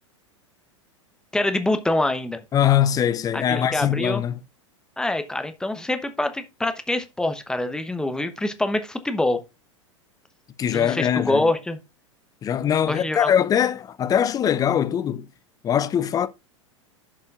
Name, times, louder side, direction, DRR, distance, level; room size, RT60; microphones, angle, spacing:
voice 1, 1.3-2.4 3.3-4.2 5.0-9.4 10.7-11.8 12.9-13.3, left 2 dB, 5° left, 1.0 m, -25 dB
voice 2, 2.5-4.4 10.6-11.5 12.4-15.3 15.6-16.3, left 9 dB, 20° left, 0.6 m, -22 dB
13.5 x 5.4 x 2.5 m
hypercardioid pair, 95°, 16 cm